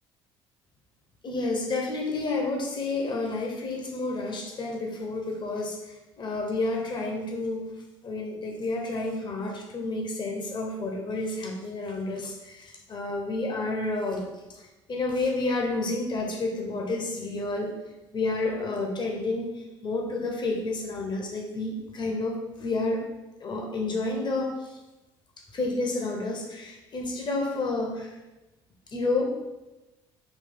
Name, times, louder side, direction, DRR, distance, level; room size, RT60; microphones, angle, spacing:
voice 1, 1.2-7.6 8.0-14.3 14.5-17.7 18.1-23.0 23.4-24.8 25.5-28.2 28.9-29.3, left 2 dB, 40° left, 0 dB, 0.9 m, -30 dB
4.1 x 2.3 x 3.7 m, 1.0 s
hypercardioid pair, 70°, 13 cm